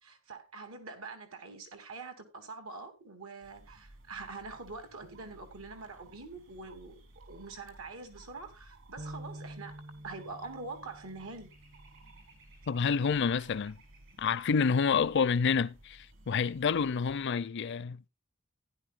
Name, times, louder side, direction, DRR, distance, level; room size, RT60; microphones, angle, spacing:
voice 1, 0.0-9.8 10.0-11.5, right 3 dB, 85° right, 2.7 m, -45 dB
sound 1, 3.4-17.3, right 2 dB, 65° right, 3.3 m, -57 dB
sound 2, 9.0-12.5, right 1 dB, 35° right, 0.6 m, -48 dB
voice 2, 12.7-13.8 14.2-18.1, left 6 dB, 55° left, 0.5 m, -28 dB
15.5 x 10.5 x 2.4 m
head